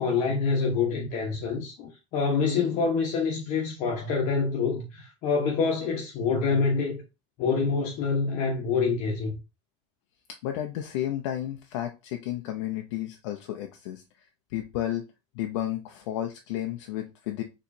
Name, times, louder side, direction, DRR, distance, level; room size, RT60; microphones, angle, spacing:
voice 1, 0.0-7.0 7.4-9.3, left 5 dB, 55° left, 1.1 m, -26 dB
voice 2, 10.4-14.0 14.5-15.1 15.3-17.4, left 12 dB, 85° left, 0.6 m, -32 dB
4.3 x 3.1 x 2.7 m
supercardioid pair, 130°, 15 cm